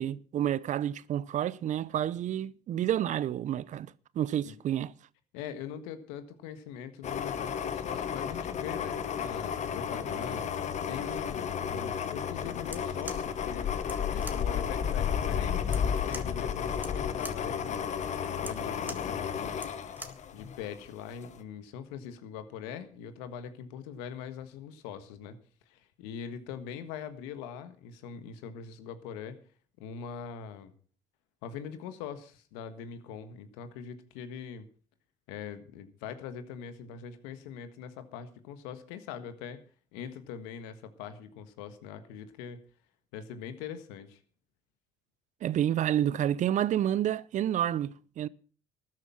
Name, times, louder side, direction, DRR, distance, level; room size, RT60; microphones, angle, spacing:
voice 1, 0.0-4.9 45.4-48.3, right 11 dB, 55° right, 0.6 m, -29 dB
voice 2, 5.3-13.7 14.1-17.8 18.4-19.7 20.3-25.4 25.7-29.4 29.8-30.7 31.4-34.6 35.3-39.6 39.9-42.6 43.1-44.2, left 7 dB, 90° left, 1.5 m, -42 dB
sound 1, 7.0-20.8 21.2-21.3, left 8 dB, 55° left, 1.3 m, -32 dB
sound 2, 12.6-20.3, right 2 dB, 15° right, 1.8 m, -47 dB
13.0 x 11.0 x 5.7 m
supercardioid pair, 75°, 15 cm